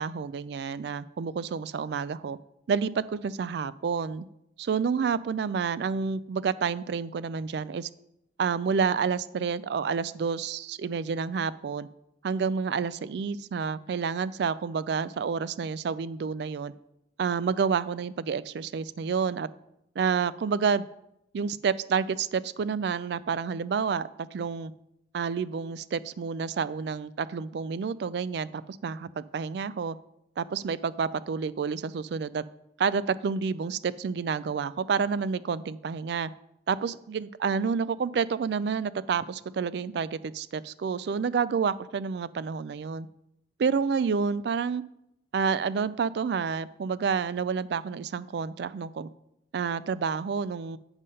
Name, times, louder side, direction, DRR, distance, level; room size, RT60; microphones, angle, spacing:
voice 1, 0.0-2.4 2.7-4.2 4.6-7.9 8.4-11.9 12.2-16.7 17.2-19.5 20.0-20.9 21.3-24.7 25.1-30.0 30.4-32.4 32.8-36.3 36.7-43.1 43.6-44.8 45.3-49.1 49.5-50.8, right 6 dB, 65° right, 17 dB, 0.3 m, -29 dB
8.0 x 5.5 x 5.3 m, 0.81 s
head